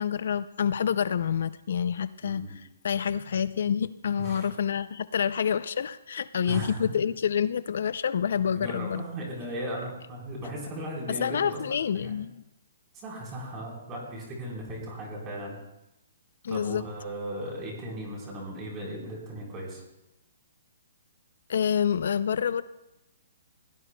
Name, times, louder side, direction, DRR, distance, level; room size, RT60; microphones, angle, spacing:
voice 1, 0.0-9.0 11.2-12.4 16.4-16.8 21.5-22.6, left 8 dB, 60° left, 15 dB, 0.4 m, -28 dB
voice 2, 2.2-2.6 4.2-4.5 6.5-6.9 8.5-12.2 12.9-15.6 16.5-19.8, right 1 dB, 15° right, -2 dB, 3.9 m, -37 dB
21.0 x 17.0 x 2.2 m, 0.93 s
hypercardioid pair, 170°, 0 cm